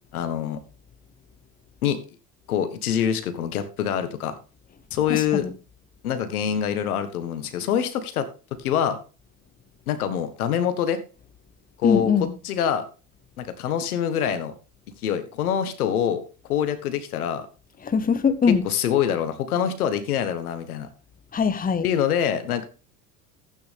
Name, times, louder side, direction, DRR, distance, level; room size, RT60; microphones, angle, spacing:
voice 1, 0.1-0.6 1.8-2.0 2.5-4.3 4.9-5.5 6.0-8.3 8.6-9.0 9.9-11.0 11.8-12.1 12.4-12.8 13.4-14.5 15.0-16.2 16.5-17.5 18.6-20.9 21.8-22.6, left 9 dB, 85° left, 1.7 m, -25 dB
voice 2, 5.1-5.5 11.8-12.3 17.8-18.6 21.3-21.8, left 6 dB, 20° left, 1.0 m, -22 dB
12.0 x 9.0 x 3.5 m
hypercardioid pair, 80°, 43 cm